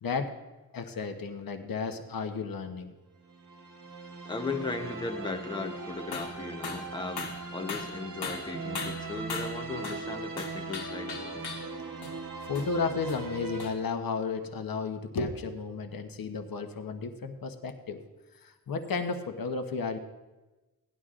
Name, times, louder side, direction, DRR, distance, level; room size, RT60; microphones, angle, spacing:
voice 1, 0.0-0.3 0.7-2.9 12.5-18.0 18.3-20.0, left 4 dB, 65° left, 6 dB, 1.0 m, -33 dB
sound 1, 3.2-13.7, right 4 dB, 55° right, 1.5 m, -40 dB
voice 2, 4.3-11.5, left 3 dB, 10° left, 4 dB, 0.8 m, -37 dB
sound 2, 6.1-6.4 6.6-6.9 7.2-10.1 10.4-11.8 12.0-12.2 12.6-12.7 13.1-13.2 13.6-13.8, left 5 dB, 90° left, 1.3 m, -39 dB
18.0 x 11.0 x 2.5 m, 1.2 s
wide cardioid pair, 105°, 37 cm